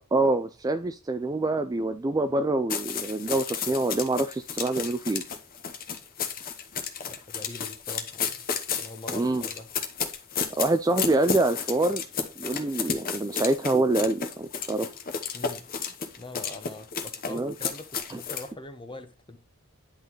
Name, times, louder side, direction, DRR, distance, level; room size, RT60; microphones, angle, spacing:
voice 1, 0.1-5.2 9.1-9.4 10.6-12.0 12.4-14.9 17.3-17.5 18.1-18.2, right 2 dB, 15° right, 9 dB, 0.3 m, -26 dB
sound 1, 2.7-18.5, left 6 dB, 40° left, 1.0 m, -32 dB
voice 2, 7.0-8.5 8.7-9.7 15.3-15.7 16.2-19.4, left 2 dB, 20° left, 7 dB, 1.0 m, -43 dB
10.5 x 4.0 x 3.0 m, 0.30 s
head